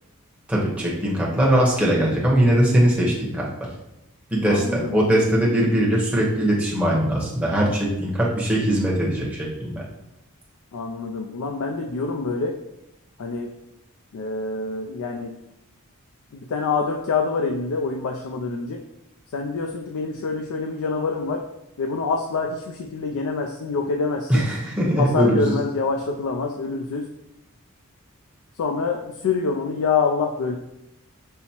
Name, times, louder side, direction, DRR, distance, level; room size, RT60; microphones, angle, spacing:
voice 1, 0.5-3.5 4.3-9.8 24.3-25.6, right 1 dB, 5° right, -5 dB, 0.8 m, -21 dB
voice 2, 4.5-5.0 10.7-12.6 13.2-13.5 14.1-15.3 16.3-18.8 19.3-21.4 21.8-24.5 25.0-27.1 28.6-30.6, left 4 dB, 75° left, 1 dB, 0.4 m, -26 dB
5.5 x 2.0 x 4.2 m, 0.87 s
head